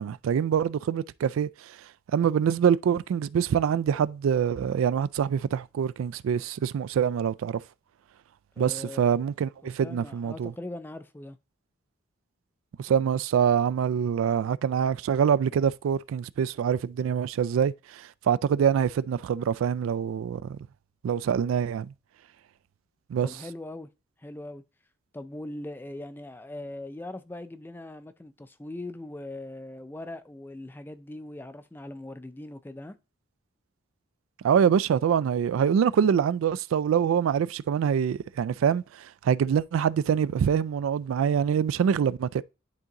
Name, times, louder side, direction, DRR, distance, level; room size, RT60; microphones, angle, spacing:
voice 1, 0.0-1.8 2.1-7.6 8.6-10.5 12.8-20.6 21.0-21.9 23.1-23.3 34.4-42.4, right 8 dB, 85° right, 0.3 m, -25 dB
voice 2, 8.6-9.1 9.8-11.4 23.2-23.9 24.2-24.6 25.1-33.0, left 1 dB, 10° left, 0.3 m, -40 dB
10.5 x 3.7 x 2.9 m
head